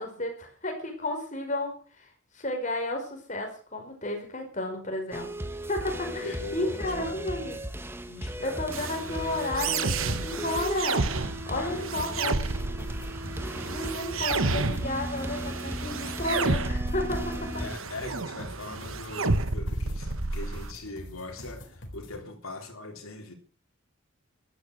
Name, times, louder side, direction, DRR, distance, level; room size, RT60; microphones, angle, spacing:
voice 1, 0.0-2.1 2.3-5.3 5.7-7.6 8.4-11.1 11.5-12.6 13.6-17.3, left 1 dB, 35° left, 5.1 m, -32 dB
sound 1, 5.1-17.8, equal, 10° right, 1.3 m, -37 dB
voice 2, 6.2-7.2 8.1-8.6 11.5-12.4 17.3-23.3, left 2 dB, 90° left, 3.8 m, -41 dB
sound 2, 8.7-20.7, right 3 dB, 80° right, 1.3 m, -31 dB
sound 3, 11.9-22.2, left 1 dB, 60° left, 3.9 m, -45 dB
15.5 x 13.0 x 6.5 m
head